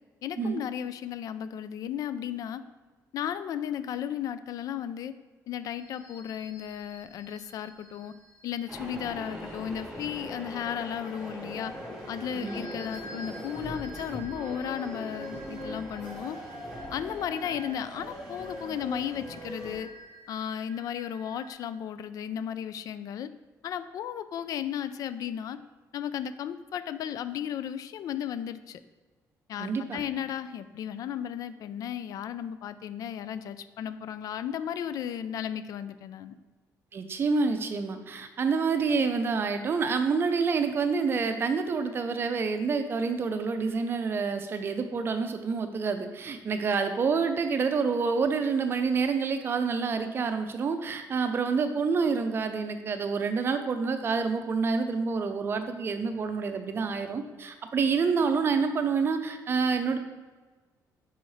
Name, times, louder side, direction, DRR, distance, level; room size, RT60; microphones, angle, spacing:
voice 1, 0.2-2.6 3.1-5.1 5.5-8.1 8.4-11.7 12.1-16.4 16.9-19.9 20.3-23.3 23.6-25.6 25.9-28.8 29.5-36.4, left 9 dB, 60° left, 13 dB, 0.3 m, -34 dB
sound 1, 5.7-21.5, equal, 45° left, 1.2 m, -51 dB
sound 2, 8.7-19.8, equal, 10° right, 1.5 m, -40 dB
voice 2, 29.6-30.0 36.9-60.0, right 5 dB, 35° right, 7 dB, 0.5 m, -28 dB
5.5 x 4.2 x 4.8 m, 1.3 s
cardioid pair, 150°, 7 cm